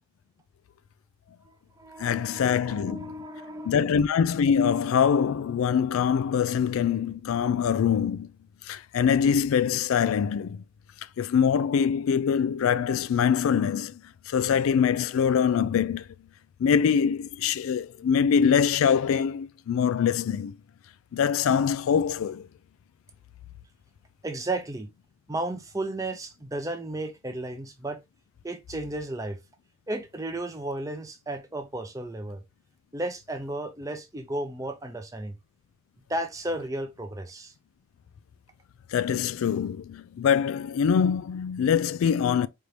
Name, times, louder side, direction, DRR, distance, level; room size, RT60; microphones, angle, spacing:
voice 1, 1.4-3.8 24.2-24.9 25.3-28.0 28.4-29.4 29.9-32.4 32.9-35.4 36.1-37.5, right 1 dB, 15° right, 0.6 m, -34 dB
voice 2, 2.0-3.1 3.7-8.3 8.6-10.6 11.2-14.0 14.3-16.1 16.6-20.6 21.1-22.5 38.9-42.5, left 7 dB, 80° left, 0.3 m, -24 dB
4.4 x 2.6 x 3.2 m
head